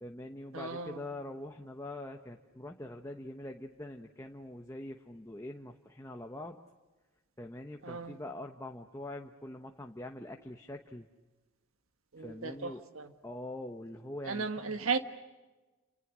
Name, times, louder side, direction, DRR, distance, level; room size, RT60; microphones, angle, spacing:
voice 1, 0.0-6.6 7.4-11.1 12.2-12.8 13.2-14.8, left 1 dB, 15° left, 3 dB, 1.1 m, -44 dB
voice 2, 0.5-1.0 7.8-8.2 12.1-13.1 14.3-15.0, right 4 dB, 75° right, 8 dB, 1.5 m, -35 dB
29.5 x 28.0 x 6.3 m, 1.2 s
head